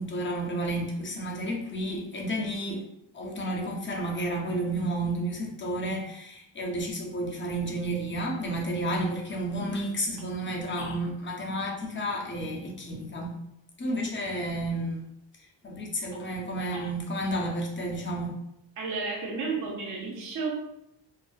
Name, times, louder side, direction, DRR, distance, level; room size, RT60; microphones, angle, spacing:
voice 1, 0.0-2.8 3.1-13.4 13.8-15.0 15.6-18.4, right 1 dB, 25° left, -1 dB, 0.5 m, -31 dB
voice 2, 18.8-20.5, right 4 dB, 45° right, -2 dB, 0.5 m, -32 dB
2.5 x 2.2 x 2.4 m, 0.80 s
cardioid pair, 105°, 45 cm